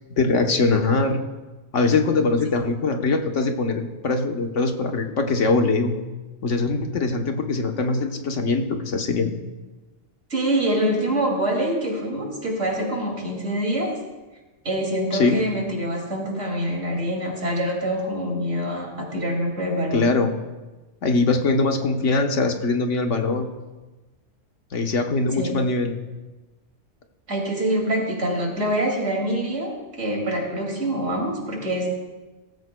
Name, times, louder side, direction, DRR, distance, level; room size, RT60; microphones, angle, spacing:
voice 1, 0.2-1.2 1.7-5.9 6.4-9.4 15.1-15.4 19.9-20.3 21.0-23.5 24.7-25.9, left 3 dB, 80° left, 4 dB, 1.4 m, -22 dB
voice 2, 10.3-13.9 14.6-20.1 25.4-25.5 27.3-31.9, right 1 dB, 85° right, -1 dB, 3.0 m, -25 dB
17.0 x 14.5 x 2.3 m, 1.2 s
omnidirectional pair, 1.2 m